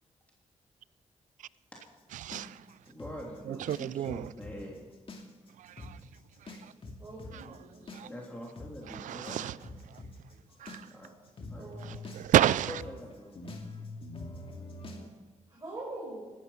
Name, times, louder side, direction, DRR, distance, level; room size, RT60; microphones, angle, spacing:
voice 1, 2.2-2.6 3.5-4.3 5.6-6.0 6.5-6.6 7.9-8.1 8.9-9.6 10.6-10.9 11.8-12.7, right 12 dB, 90° right, 0.4 m, -30 dB
sound 1, 2.3-4.6 4.9-5.5 5.8-5.9 6.5-15.1, left 2 dB, 45° left, 2.6 m, -44 dB
voice 2, 2.9-4.8 8.0-9.5 10.9-11.1 11.5-11.7 12.7-13.4, equal, 10° left, 3.4 m, -44 dB
voice 3, 7.0-8.2 11.6-12.1 15.5-16.3, right 2 dB, 30° right, 5.7 m, -44 dB
18.5 x 13.0 x 5.8 m
cardioid pair, 75°, 13 cm